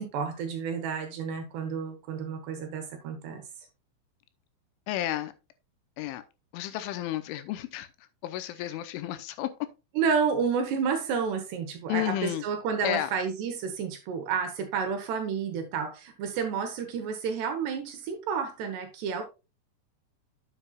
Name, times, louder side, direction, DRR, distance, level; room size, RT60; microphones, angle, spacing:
voice 1, 0.0-3.7 10.0-19.2, right 6 dB, 70° right, 2.9 m, -30 dB
voice 2, 4.9-5.3 6.0-6.2 6.5-9.5 11.9-12.4 12.8-13.1, left 13 dB, 85° left, 3.1 m, -32 dB
9.7 x 7.8 x 2.3 m
omnidirectional pair, 5.7 m